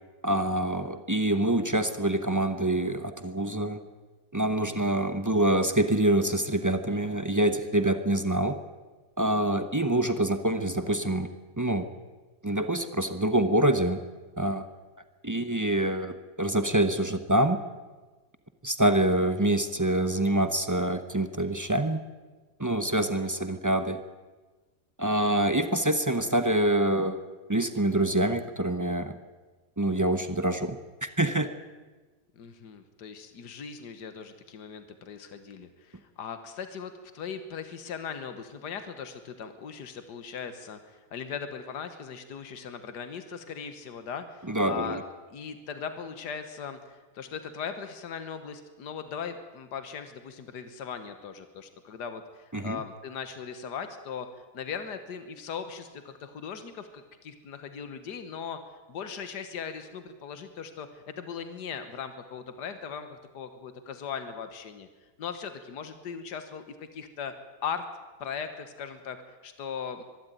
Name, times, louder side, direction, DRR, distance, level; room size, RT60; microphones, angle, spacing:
voice 1, 0.2-3.8 4.3-8.6 9.2-11.3 11.6-11.9 12.4-14.0 14.4-14.7 15.2-17.6 18.6-22.0 22.6-24.0 25.0-27.2 27.5-29.2 29.8-31.5 44.5-45.0 52.5-52.8, right 1 dB, 15° right, 9 dB, 0.6 m, -26 dB
voice 2, 32.4-45.0 45.3-58.6 58.9-64.9 65.2-67.3 67.6-67.8 68.2-70.0, left 6 dB, 80° left, 9 dB, 1.8 m, -39 dB
24.0 x 12.0 x 9.2 m, 1.3 s
omnidirectional pair, 1.8 m